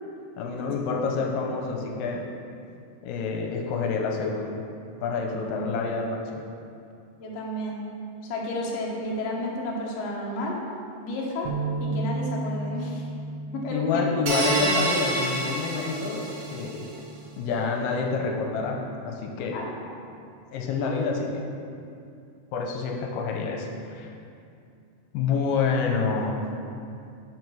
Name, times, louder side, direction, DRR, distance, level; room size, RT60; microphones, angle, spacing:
voice 1, 0.4-2.3 3.0-4.5 5.0-6.5 13.7-16.9 17.4-19.6 20.5-21.4 22.5-24.1 25.1-26.4, left 4 dB, 90° left, 1 dB, 2.3 m, -28 dB
voice 2, 5.2-5.7 7.2-7.9 8.2-10.6 11.0-11.5 11.8-13.1 13.5-14.1 19.5-19.7, left 1 dB, 65° left, -3 dB, 1.7 m, -32 dB
sound 1, 11.5-17.7, right 3 dB, 80° right, 2.3 m, -35 dB
sound 2, 14.3-16.7, right 1 dB, 65° right, 1.8 m, -28 dB
6.2 x 5.0 x 6.0 m, 2.5 s
omnidirectional pair, 3.9 m